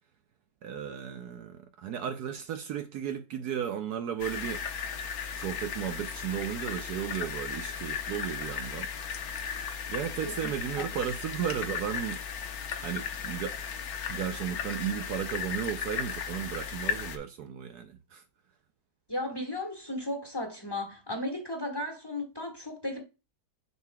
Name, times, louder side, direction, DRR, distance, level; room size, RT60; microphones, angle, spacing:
voice 1, 0.6-4.7 5.3-8.9 9.9-12.2 12.8-13.6 14.1-18.2, right 9 dB, 70° right, 1.1 m, -34 dB
sound 1, 4.2-17.2, left 6 dB, 60° left, 1.2 m, -36 dB
voice 2, 19.1-23.0, left 1 dB, 15° left, 1.4 m, -35 dB
6.8 x 6.6 x 2.3 m
omnidirectional pair, 1.9 m